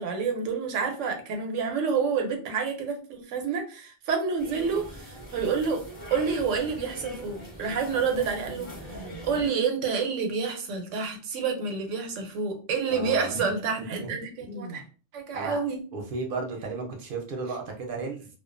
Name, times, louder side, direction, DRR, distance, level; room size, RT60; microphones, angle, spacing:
voice 1, 0.0-5.8 6.1-14.8 15.1-15.8, right 5 dB, 80° right, 4 dB, 0.9 m, -29 dB
sound 1, 4.4-9.5, equal, 20° left, 0.9 m, -41 dB
voice 2, 12.9-13.6 13.9-14.1 14.4-14.8 15.3-15.6 15.9-18.3, right 3 dB, 55° right, 2 dB, 0.7 m, -34 dB
2.3 x 2.2 x 2.4 m, 0.37 s
omnidirectional pair, 1.3 m